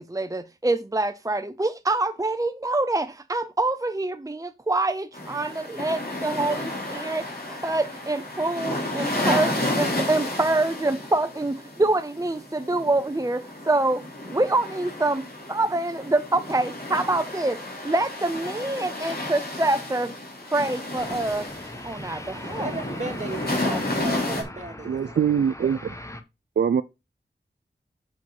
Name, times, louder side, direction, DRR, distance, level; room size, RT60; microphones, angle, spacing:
voice 1, 0.0-14.0 14.3-17.6 17.9-20.1 20.4-21.5 21.8-22.7 23.7-23.8, right 2 dB, 20° right, 0.6 m, -26 dB
sound 1, 5.1-24.4, left 1 dB, 55° left, 3.4 m, -32 dB
sound 2, 21.0-26.2, left 1 dB, 15° left, 1.1 m, -40 dB
voice 2, 22.6-25.2, right 2 dB, 40° right, 2.0 m, -35 dB
voice 3, 24.9-25.9 26.6-26.8, right 7 dB, 70° right, 0.4 m, -23 dB
7.5 x 5.1 x 5.5 m
wide cardioid pair, 65°, 18 cm